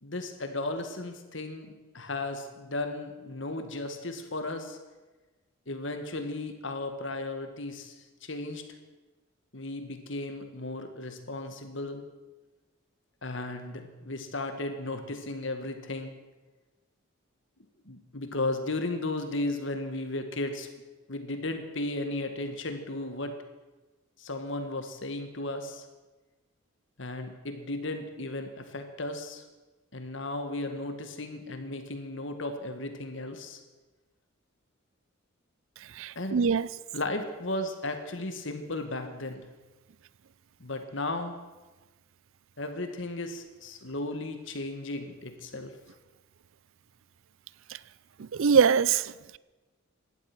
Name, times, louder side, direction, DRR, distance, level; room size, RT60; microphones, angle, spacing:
voice 1, 0.0-4.8 5.7-8.6 9.5-12.0 13.2-16.1 17.9-20.7 21.1-23.3 24.2-25.9 27.0-29.4 29.9-33.6 36.2-36.4 36.9-39.5 40.6-41.4 42.6-45.7, left 2 dB, 60° left, 1.8 m, -35 dB
voice 2, 36.0-36.7 48.2-49.4, right 6 dB, 70° right, 0.5 m, -24 dB
16.5 x 12.0 x 6.2 m
head